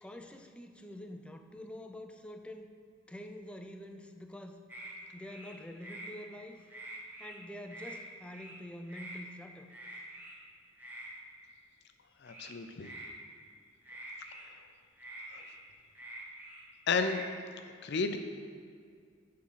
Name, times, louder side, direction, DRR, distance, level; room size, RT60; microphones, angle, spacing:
voice 1, 0.0-2.7 3.1-4.6 5.1-6.6 7.2-9.7, left 1 dB, 5° left, 6 dB, 0.4 m, -46 dB
sound 1, 4.7-4.9 5.2-6.1 6.5-7.4 7.7-8.0 8.3-8.6 8.9-9.2 9.7-10.4 10.8-11.1 12.2-13.1 13.8-14.5 15.0-16.6 16.9-17.3, right 1 dB, 10° right, 1.0 m, -47 dB
voice 2, 12.2-12.9 15.3-15.4 16.9-17.2 17.8-18.2, left 4 dB, 60° left, 8 dB, 0.6 m, -32 dB
10.0 x 3.7 x 5.7 m, 2.1 s
head